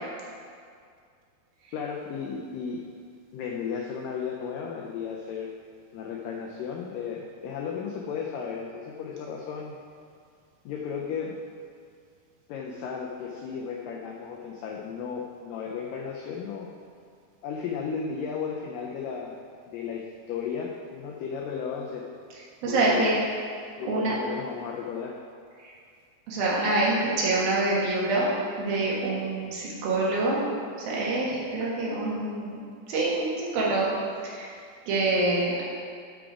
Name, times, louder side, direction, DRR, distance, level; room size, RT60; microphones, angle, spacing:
voice 1, 1.7-2.8 3.3-5.5 5.9-9.8 10.7-11.4 12.5-16.7 17.4-19.4 19.7-22.1 22.7-23.1 23.8-25.2, left 6 dB, 85° left, 0 dB, 1.9 m, -34 dB
voice 2, 22.6-23.2 23.8-24.1 25.6-25.7 26.3-28.3 28.6-30.4 30.8-32.6 32.9-33.9 34.2-34.6 34.9-35.6, right 2 dB, 70° right, -5 dB, 3.2 m, -26 dB
11.5 x 5.1 x 4.8 m, 2.2 s
omnidirectional pair, 4.6 m